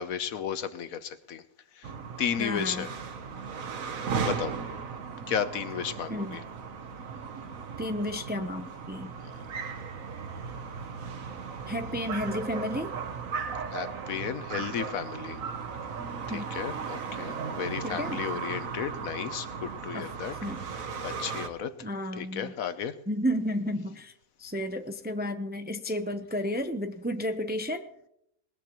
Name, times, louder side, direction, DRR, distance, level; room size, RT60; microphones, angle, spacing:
voice 1, 0.0-1.4 1.8-1.9 2.2-2.9 4.2-4.5 5.3-6.4 9.2-9.4 13.7-15.4 16.3-20.3 21.0-21.7 22.2-22.9, left 8 dB, 75° left, 11 dB, 1.3 m, -33 dB
sound 1, 1.8-21.5, right 5 dB, 70° right, 1.5 m, -36 dB
voice 2, 2.4-2.9 6.1-6.4 7.8-9.1 11.7-12.9 16.3-16.5 17.8-18.2 19.9-20.1 20.4-20.6 21.8-22.5 23.1-24.1 24.4-27.8, equal, 10° right, 7 dB, 0.5 m, -32 dB
20.5 x 19.5 x 3.1 m, 0.76 s
omnidirectional pair, 1.5 m